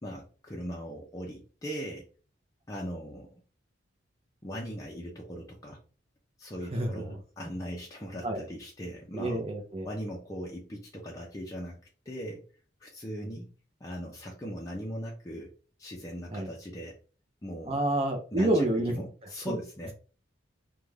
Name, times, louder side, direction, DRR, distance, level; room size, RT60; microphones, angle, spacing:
voice 1, 0.0-2.1 2.7-3.4 4.4-5.8 6.4-9.4 9.8-11.8 12.1-12.4 12.8-13.5 13.8-15.5 15.8-17.0 17.4-17.8 18.3-19.9, equal, 15° left, -2 dB, 0.4 m, -39 dB
voice 2, 6.7-7.0 8.2-8.4 9.1-9.9 13.1-13.3 16.3-16.5 17.7-18.9 19.5-19.6, right 1 dB, 30° right, 3 dB, 0.6 m, -28 dB
2.5 x 2.2 x 3.2 m, 0.37 s
head